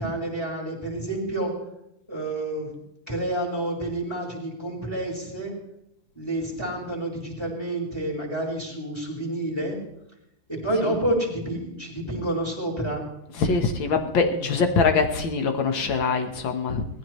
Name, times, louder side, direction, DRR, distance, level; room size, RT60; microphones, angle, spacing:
voice 1, 0.0-1.5 2.1-2.8 3.1-5.5 6.1-9.8 10.5-13.1, right 1 dB, 5° left, -1 dB, 4.9 m, -29 dB
voice 2, 13.4-16.9, left 4 dB, 65° left, 6 dB, 2.0 m, -23 dB
20.0 x 15.0 x 3.2 m, 0.83 s
omnidirectional pair, 2.4 m